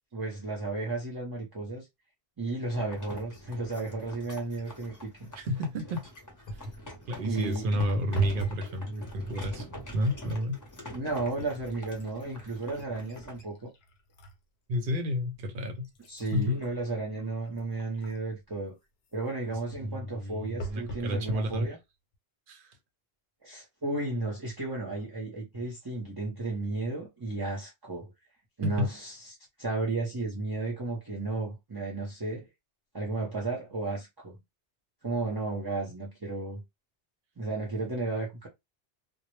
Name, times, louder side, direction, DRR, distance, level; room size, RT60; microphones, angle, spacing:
voice 1, 0.1-1.9 2.4-5.3 7.2-7.7 10.9-13.7 16.1-18.7 19.1-21.8 23.4-28.1 28.6-32.5 32.9-34.4 35.0-36.6 37.4-38.5, right 2 dB, 25° right, 0.6 m, -33 dB
sound 1, 2.7-13.4, equal, 20° left, 0.6 m, -45 dB
voice 2, 5.4-6.1 7.1-9.7 9.9-10.6 14.7-15.9 16.3-16.6 19.8-21.7 22.5-22.7 28.6-28.9, left 1 dB, 65° right, 0.7 m, -31 dB
sound 2, 6.4-6.9 7.8-8.7 9.0-9.5 10.3-10.4 10.8-14.4 14.9-15.0 15.6-18.4 20.6-21.1 21.8-21.9 22.1-22.2, right 1 dB, 80° left, 0.8 m, -37 dB
2.0 x 2.0 x 3.0 m
omnidirectional pair, 1.0 m